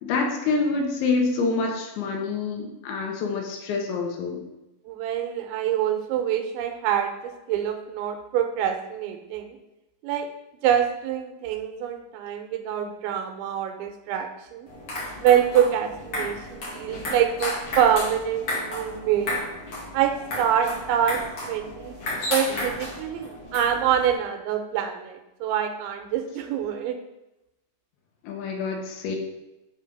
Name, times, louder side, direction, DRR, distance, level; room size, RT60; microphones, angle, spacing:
voice 1, 0.0-4.4 28.2-29.2, left 4 dB, 80° left, 2 dB, 3.4 m, -26 dB
voice 2, 4.9-7.1 7.5-9.6 10.0-10.3 10.6-14.7 15.2-19.4 19.9-21.9 22.3-27.0, right 9 dB, 90° right, 5 dB, 3.1 m, -25 dB
sound 1, 14.7-24.1, left 1 dB, 45° left, 2.2 m, -33 dB
7.4 x 4.9 x 5.3 m, 0.95 s
omnidirectional pair, 5.2 m